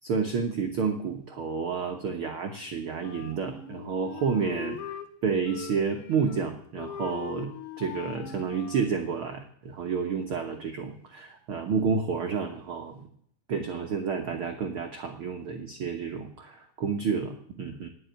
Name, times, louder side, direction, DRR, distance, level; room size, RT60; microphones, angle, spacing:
voice 1, 0.0-4.9 5.2-13.1 13.5-17.9, right 5 dB, 80° right, 4 dB, 1.2 m, -30 dB
Wind instrument woodwind instrument, 3.0-5.1 5.5-6.5 6.8-9.0, left 8 dB, 80° left, 3.2 m, -41 dB
18.5 x 6.2 x 9.1 m, 0.68 s
omnidirectional pair, 4.2 m